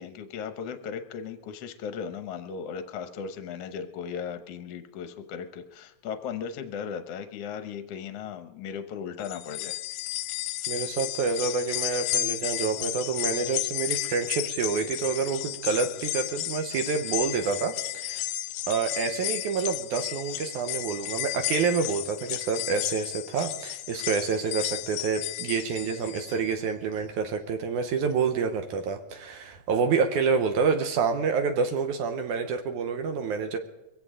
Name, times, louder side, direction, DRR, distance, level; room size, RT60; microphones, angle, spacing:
voice 1, 0.0-9.8, left 7 dB, 70° left, 9 dB, 1.5 m, -37 dB
sound 1, 9.2-26.5 26.9-27.0 28.1-28.2, left 16 dB, 90° left, 2.4 m, -33 dB
voice 2, 10.7-18.3 18.7-33.6, right 5 dB, 70° right, 6 dB, 2.3 m, -28 dB
22.5 x 16.5 x 3.8 m, 0.97 s
omnidirectional pair, 3.9 m